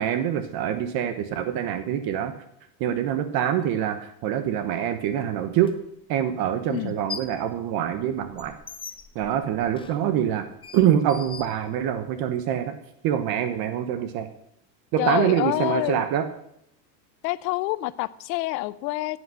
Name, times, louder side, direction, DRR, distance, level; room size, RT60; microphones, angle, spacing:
voice 1, 0.0-2.3 2.8-5.7 6.1-8.5 9.1-10.4 10.7-12.7 13.0-14.3 14.9-16.3, right 10 dB, 45° right, 9 dB, 1.1 m, -25 dB
sound 1, 5.6-5.7 6.8-7.4 7.8-12.2, left 6 dB, 10° left, 0.5 m, -41 dB
voice 2, 15.0-16.0 17.2-19.2, left 19 dB, 80° left, 18 dB, 0.7 m, -27 dB
11.0 x 8.2 x 6.4 m, 0.75 s
supercardioid pair, 135°, 50 cm